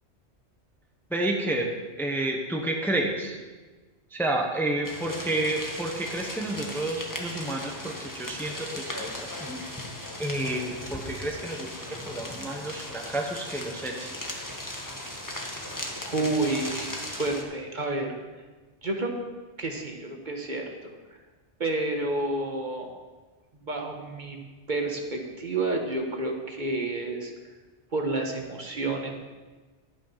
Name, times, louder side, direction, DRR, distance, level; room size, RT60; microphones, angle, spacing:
voice 1, 1.1-1.7 2.0-3.4 4.1-9.6 10.2-14.1, right 1 dB, ahead, 2 dB, 1.0 m, -30 dB
sound 1, 4.8-17.4, left 1 dB, 15° left, 1.4 m, -37 dB
voice 2, 16.0-18.1 18.8-19.1 19.6-20.7 21.6-22.9 23.5-24.4 24.7-27.3 27.9-29.1, right 2 dB, 45° right, 2 dB, 1.5 m, -30 dB
11.5 x 8.7 x 5.7 m, 1.3 s
omnidirectional pair, 1.1 m